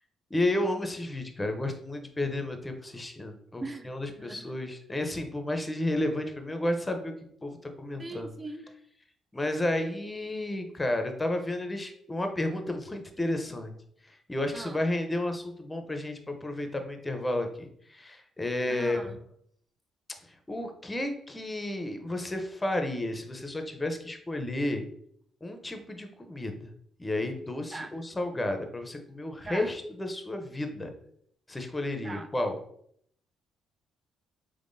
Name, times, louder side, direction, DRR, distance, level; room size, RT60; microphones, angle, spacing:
voice 1, 0.3-7.1 7.4-8.3 9.3-13.7 14.1-19.0 20.5-24.8 25.4-26.7 27.0-30.9 31.5-32.6, left 1 dB, 15° left, 0.6 m, -32 dB
voice 2, 3.6-4.6 8.0-8.7 14.5-14.8 18.7-19.2 27.7-28.0 29.5-29.7 32.0-32.3, right 2 dB, 30° right, 0.4 m, -40 dB
3.6 x 3.2 x 2.6 m
cardioid pair, 90°, 0 cm